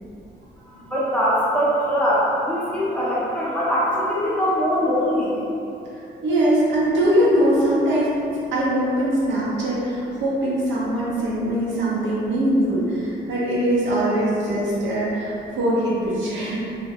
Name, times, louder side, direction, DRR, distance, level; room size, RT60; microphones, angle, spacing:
voice 1, 0.9-5.3, equal, 5° left, -9 dB, 0.7 m, -22 dB
voice 2, 6.2-16.6, right 1 dB, 70° right, -7 dB, 0.8 m, -22 dB
2.3 x 2.2 x 3.5 m, 2.8 s
cardioid pair, 90°, 20 cm